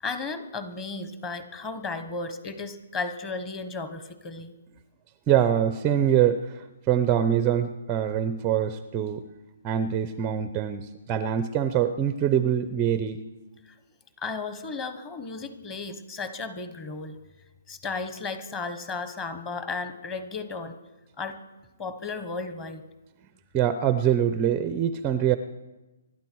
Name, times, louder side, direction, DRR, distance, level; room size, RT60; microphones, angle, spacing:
voice 1, 0.0-4.5 14.2-17.2 17.7-20.8 21.2-21.4 21.8-22.8, left 3 dB, 15° left, 9 dB, 1.2 m, -34 dB
voice 2, 5.3-6.5 6.9-9.2 9.6-13.2 23.5-25.4, right 9 dB, 15° right, 11 dB, 0.5 m, -24 dB
25.5 x 12.0 x 4.6 m, 1.1 s
hypercardioid pair, 170°, 0 cm